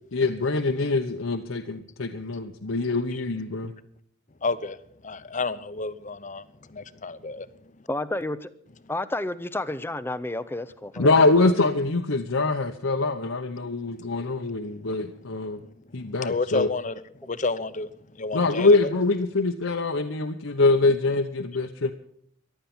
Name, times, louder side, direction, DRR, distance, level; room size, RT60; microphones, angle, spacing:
voice 1, 0.1-3.7 11.0-15.6 15.9-16.7 18.3-21.9, left 3 dB, 70° left, 4 dB, 0.9 m, -24 dB
voice 2, 4.4-4.8 5.0-7.5 14.0-14.1 15.6-16.9 17.3-17.9 18.2-18.9, left 3 dB, 35° left, 13 dB, 0.8 m, -30 dB
voice 3, 7.9-8.5 8.9-11.2, left 2 dB, 10° left, 13 dB, 0.6 m, -30 dB
15.0 x 11.5 x 7.2 m, 0.67 s
head